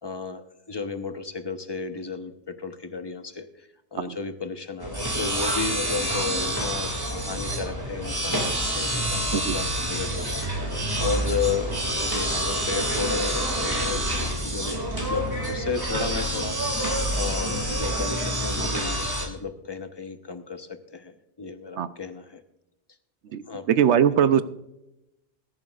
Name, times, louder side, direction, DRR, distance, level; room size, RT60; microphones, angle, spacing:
voice 1, 0.0-22.4 23.5-23.6, left 5 dB, 25° left, 8 dB, 0.9 m, -33 dB
sound 1, 4.8-19.3, right 1 dB, 20° right, 2.4 m, -27 dB
voice 2, 23.3-24.4, right 8 dB, 75° right, 13 dB, 1.0 m, -21 dB
20.5 x 11.0 x 2.4 m, 0.89 s
omnidirectional pair, 1.2 m